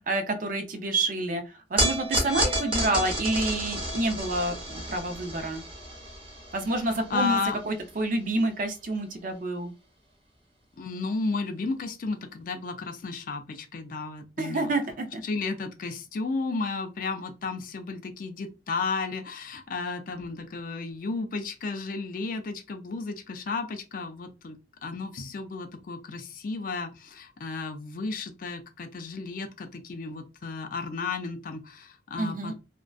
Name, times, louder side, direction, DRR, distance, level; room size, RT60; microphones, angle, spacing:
voice 1, 0.0-5.6 6.5-7.4 7.6-9.7 14.4-15.2 32.2-32.5, right 2 dB, 50° right, 0.5 m, -28 dB
sound 1, 1.8-8.2, right 1 dB, 30° right, 0.8 m, -31 dB
voice 2, 6.8-7.6 10.8-14.7 15.2-32.5, left 3 dB, 50° left, 0.4 m, -33 dB
2.5 x 2.1 x 2.3 m
head